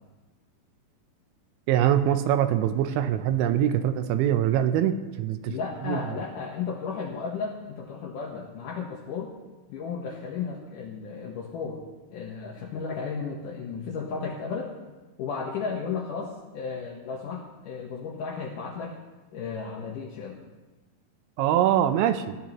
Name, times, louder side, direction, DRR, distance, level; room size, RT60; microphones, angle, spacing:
voice 1, 1.7-6.0 21.4-22.4, right 10 dB, 85° right, 9 dB, 3.0 m, -24 dB
voice 2, 5.5-9.3 9.7-11.8 12.1-14.7 15.2-19.0 19.3-20.4, left 5 dB, 80° left, -2 dB, 1.9 m, -34 dB
20.0 x 12.0 x 3.0 m, 1.2 s
omnidirectional pair, 5.4 m